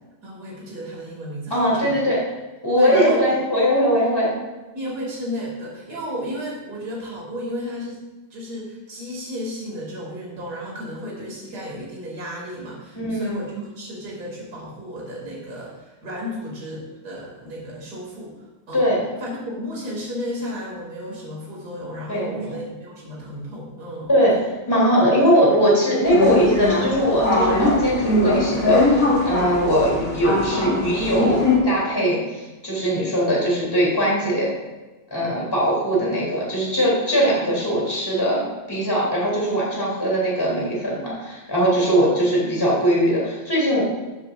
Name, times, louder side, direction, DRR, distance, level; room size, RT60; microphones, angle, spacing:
voice 1, 0.2-2.0 2.8-3.2 4.7-8.0 8.3-18.3 18.7-18.9 19.2-24.1, equal, 50° right, -3 dB, 3.2 m, -33 dB
voice 2, 1.5-2.2 2.6-4.3 12.9-13.4 18.7-19.0 22.1-22.5 24.1-24.4 24.7-34.5 35.1-43.8, equal, 10° left, -5 dB, 3.2 m, -20 dB
sound 1, 26.0-31.6, left 2 dB, 45° left, 2.1 m, -21 dB
14.5 x 7.5 x 2.6 m, 1.2 s
omnidirectional pair, 2.2 m